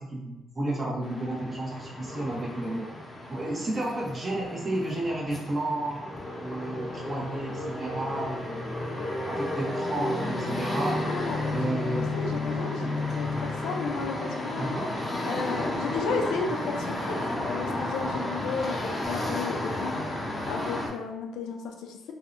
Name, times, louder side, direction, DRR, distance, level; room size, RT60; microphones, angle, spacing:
voice 1, 0.0-2.9 3.3-6.0 6.4-8.8 9.3-11.0 11.5-12.2 12.8-13.0 14.6-15.0 18.0-18.1, right 1 dB, 30° right, -3 dB, 0.7 m, -32 dB
sound 1, 1.0-20.9, left 1 dB, 20° left, 0.5 m, -32 dB
voice 2, 11.1-11.8 12.1-12.8 13.2-14.7 15.2-17.2 17.4-22.1, left 5 dB, 90° left, 2 dB, 0.3 m, -34 dB
2.6 x 2.0 x 2.5 m, 0.96 s
cardioid pair, 90°, 0 cm